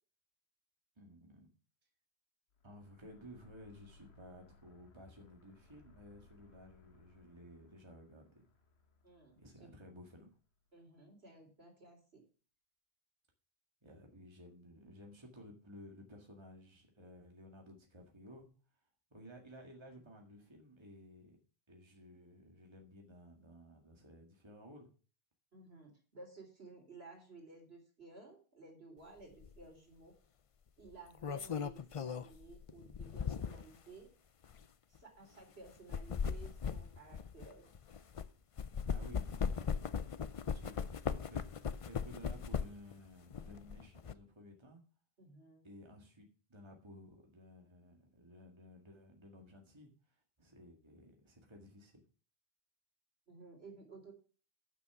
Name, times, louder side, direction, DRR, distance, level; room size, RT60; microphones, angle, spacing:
voice 1, 1.0-1.5 2.6-8.5 9.4-10.4 13.8-18.5 18.7-18.8 19.1-21.4 21.7-24.9 38.9-40.1 40.5-40.8 41.2-41.5 41.8-44.8 45.6-52.0, equal, 25° right, 2 dB, 1.8 m, -56 dB
sound 1, 2.5-10.9, left 4 dB, 75° left, 1.6 m, -66 dB
voice 2, 9.0-9.4 10.7-12.2 25.5-30.1 30.8-34.1 34.9-37.7 45.2-45.7 53.3-54.1, right 3 dB, 70° right, 1 dB, 4.1 m, -55 dB
sound 2, 29.4-29.6 30.9-33.8 34.4-34.6 35.7-38.3 38.6-42.9 43.3-44.1, left 6 dB, 45° left, 0.5 m, -38 dB
11.0 x 6.3 x 5.9 m, 0.37 s
omnidirectional pair, 1.1 m